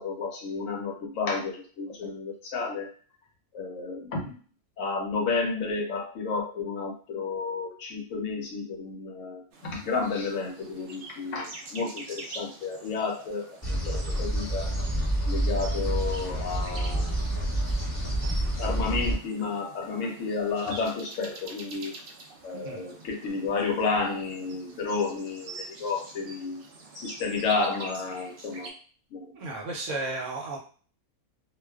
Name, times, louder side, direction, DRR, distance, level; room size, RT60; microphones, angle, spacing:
voice 1, 0.0-2.9 3.5-4.4 4.8-14.7 15.3-17.2 18.6-21.9 22.4-26.6 26.9-28.7 29.1-29.4, left 4 dB, 70° left, 1 dB, 0.9 m, -31 dB
sound 1, 9.5-28.7, right 3 dB, 90° right, 0.4 m, -46 dB
sound 2, 13.6-19.1, right 1 dB, 15° left, 0.7 m, -28 dB
voice 2, 29.4-30.6, right 2 dB, 70° right, 0 dB, 0.9 m, -34 dB
2.4 x 2.2 x 2.3 m, 0.42 s
omnidirectional pair, 1.5 m